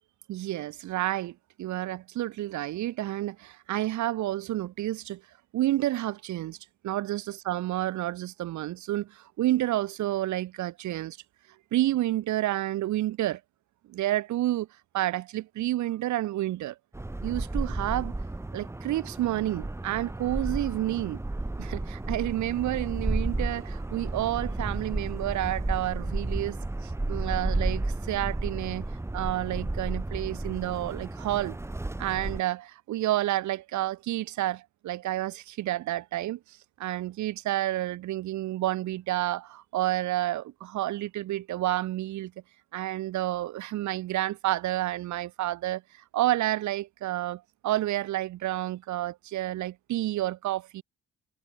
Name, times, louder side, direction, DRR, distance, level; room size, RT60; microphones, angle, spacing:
voice 1, 0.3-5.2 5.5-6.6 6.8-11.2 11.7-13.4 13.9-14.7 14.9-16.7 17.2-18.1 18.5-21.2 21.6-26.6 26.8-28.9 29.1-31.6 32.0-36.4 36.8-42.3 42.7-50.8, right 15 dB, 70° right, 0.7 m, -30 dB
sound 1, 16.9-32.4, right 2 dB, 10° right, 0.9 m, -32 dB
cardioid pair, 90°, 30 cm